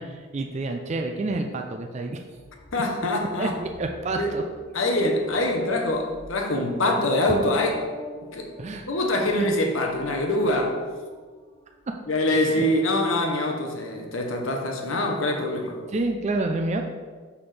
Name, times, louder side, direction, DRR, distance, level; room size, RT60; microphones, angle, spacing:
voice 1, 0.0-2.2 2.7-2.8 3.4-4.4 8.6-9.5 12.3-12.6 15.9-16.8, right 2 dB, 30° right, 3 dB, 0.4 m, -29 dB
sound 1, 2.3-12.1 12.4-13.1, left 1 dB, 20° left, 1.3 m, -46 dB
voice 2, 2.7-3.5 4.2-4.4 4.7-7.8 8.3-8.5 8.9-10.8 12.1-15.8, left 1 dB, 70° left, 3 dB, 0.9 m, -24 dB
6.0 x 5.7 x 3.3 m, 1.5 s
head